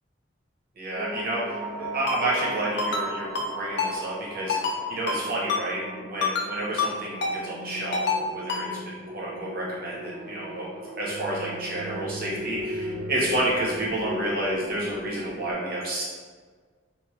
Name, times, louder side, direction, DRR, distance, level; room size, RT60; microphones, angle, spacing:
voice 1, 0.8-3.3 3.5-10.7 11.0-16.0, right 1 dB, 45° right, -5 dB, 0.7 m, -30 dB
sound 1, 0.9-15.5, equal, 90° right, 0.7 m, -37 dB
Ringtone, 2.1-2.2 2.8-3.1 3.3-3.5 3.8-3.9 4.5-4.8 5.1-5.2 5.5-5.6 6.2-6.5 6.8-6.9 7.2-7.3 7.9-8.2 8.5-8.6, left 4 dB, 55° left, 0.4 m, -26 dB
3.0 x 2.0 x 3.1 m, 1.5 s
head